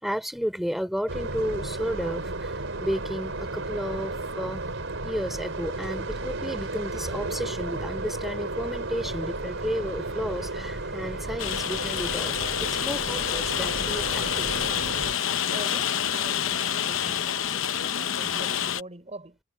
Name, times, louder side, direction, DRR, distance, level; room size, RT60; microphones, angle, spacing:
voice 1, 0.0-4.7 5.0-14.6, equal, ahead, 4.5 m, -33 dB
sound 1, 1.1-15.1, right 2 dB, 75° right, 4.2 m, -33 dB
Rain, 11.4-18.8, left 9 dB, 80° left, 0.8 m, -28 dB
voice 2, 15.4-19.4, right 2 dB, 35° right, 4.2 m, -43 dB
head